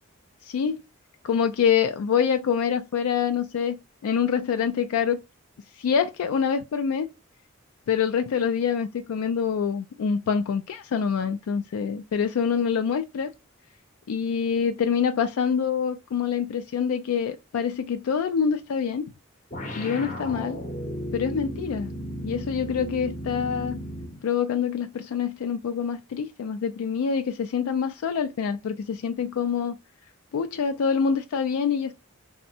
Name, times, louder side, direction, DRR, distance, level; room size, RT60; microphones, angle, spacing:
voice 1, 0.5-0.8 1.2-3.8 4.0-5.2 5.8-7.1 7.9-13.3 14.1-19.1 19.7-20.6 21.1-21.9 22.2-23.8 24.2-29.7 30.3-31.9, left 7 dB, 80° left, 0.3 m, -25 dB
sound 1, 19.5-24.2, equal, 35° left, 0.6 m, -34 dB
3.4 x 2.0 x 2.6 m
head